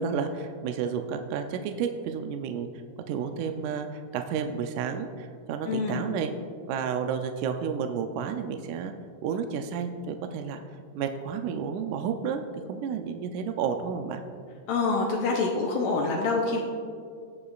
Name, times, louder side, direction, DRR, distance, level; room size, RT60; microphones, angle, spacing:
voice 1, 0.0-2.7 3.1-6.3 6.7-8.9 9.2-10.6 11.0-14.2, right 6 dB, 80° right, 6 dB, 1.8 m, -31 dB
voice 2, 5.7-6.1 14.7-16.6, left 3 dB, 80° left, -1 dB, 2.3 m, -26 dB
19.5 x 6.9 x 2.4 m, 2.2 s
omnidirectional pair, 4.0 m